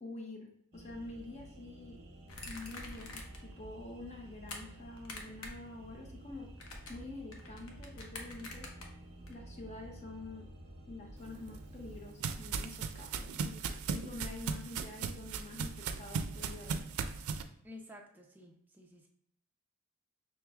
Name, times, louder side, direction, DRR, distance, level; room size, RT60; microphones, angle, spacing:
voice 1, 0.0-2.0 2.4-6.5 6.9-8.7 9.3-10.5 10.9-16.9, left 2 dB, 30° left, 1 dB, 0.7 m, -47 dB
sound 1, 0.7-12.1, right 1 dB, 45° right, 0.9 m, -52 dB
sound 2, 2.3-3.5 3.9-4.6 5.0-5.7 5.9-9.3, left 2 dB, 80° left, 0.8 m, -47 dB
sound 3, 11.3-17.4, right 5 dB, 85° right, 0.4 m, -38 dB
voice 2, 17.6-19.1, left 1 dB, 10° right, 0 dB, 0.5 m, -52 dB
6.1 x 3.0 x 2.3 m, 0.74 s
head